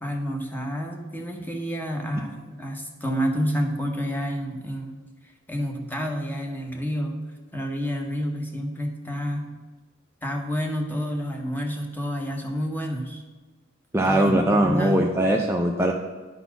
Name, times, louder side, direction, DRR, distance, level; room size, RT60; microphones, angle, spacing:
voice 1, 0.0-5.0 5.5-7.2 7.5-9.5 10.2-13.2 14.0-15.1, equal, 10° left, 2 dB, 1.0 m, -29 dB
voice 2, 13.9-15.9, right 1 dB, 10° right, 1 dB, 0.5 m, -21 dB
10.0 x 4.1 x 5.9 m, 1.3 s
head